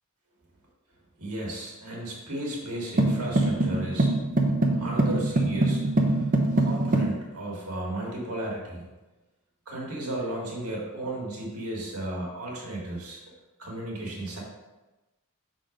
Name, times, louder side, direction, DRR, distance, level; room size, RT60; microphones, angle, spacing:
voice 1, 1.2-4.1 4.8-8.9 9.6-13.2 13.6-14.4, right 1 dB, 85° right, -3 dB, 1.7 m, -34 dB
sound 1, 3.0-7.2, right 2 dB, 40° right, 0.7 m, -24 dB
5.8 x 3.9 x 5.0 m, 1.1 s
head